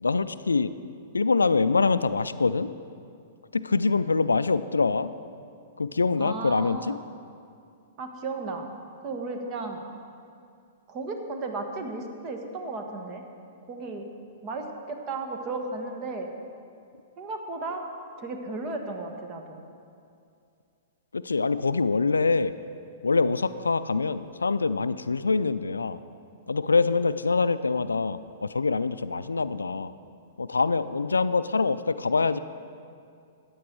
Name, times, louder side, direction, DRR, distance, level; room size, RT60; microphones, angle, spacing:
voice 1, 0.0-0.7 1.1-2.7 3.5-5.1 5.8-7.0 21.1-22.5 23.0-26.0 26.5-29.9 30.4-32.4, left 4 dB, 85° left, 14 dB, 0.4 m, -24 dB
voice 2, 6.2-7.0 8.0-8.7 9.0-9.8 10.9-13.2 13.7-14.1 14.4-16.3 17.2-17.8 18.2-19.6, right 3 dB, 35° right, 4 dB, 1.5 m, -34 dB
14.5 x 9.1 x 4.6 m, 2.4 s
figure-of-eight pair, 110°, 0 cm